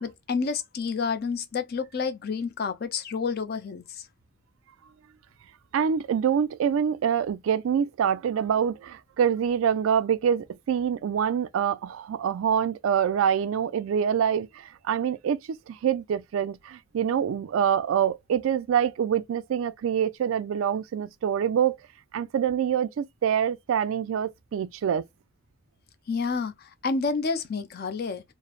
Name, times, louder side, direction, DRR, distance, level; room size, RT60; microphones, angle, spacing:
voice 1, 0.0-4.0 26.1-26.5 26.8-28.2, left 5 dB, 50° left, 0.5 m, -29 dB
voice 2, 5.7-21.8 22.1-25.0, right 8 dB, 75° right, 0.3 m, -25 dB
3.1 x 2.0 x 2.3 m
head